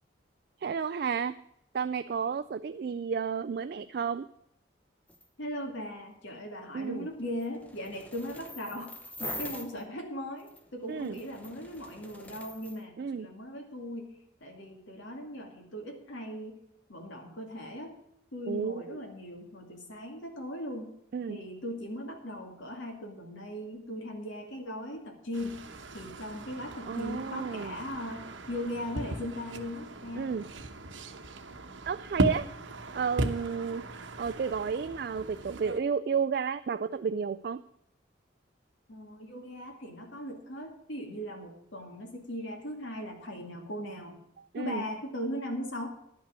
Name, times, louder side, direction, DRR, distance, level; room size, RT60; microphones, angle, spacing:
voice 1, 0.6-1.4 1.7-4.3 6.7-7.1 10.9-11.2 13.0-13.3 18.5-19.0 21.1-21.4 26.9-27.7 30.2-30.5 31.9-32.5 32.9-37.6 44.5-44.8, right 6 dB, 55° right, 11 dB, 0.3 m, -32 dB
sound 1, 5.1-5.3 7.0-9.8 10.4-12.8, left 1 dB, 5° left, 0.7 m, -44 dB
voice 2, 5.4-16.6 16.9-17.9 18.3-20.9 21.3-25.7 25.9-30.3 38.9-44.2 44.6-45.9, equal, 80° left, 2 dB, 2.4 m, -39 dB
sound 2, 25.3-35.8, right 1 dB, 80° right, 1.0 m, -37 dB
11.0 x 5.8 x 8.2 m, 0.77 s
head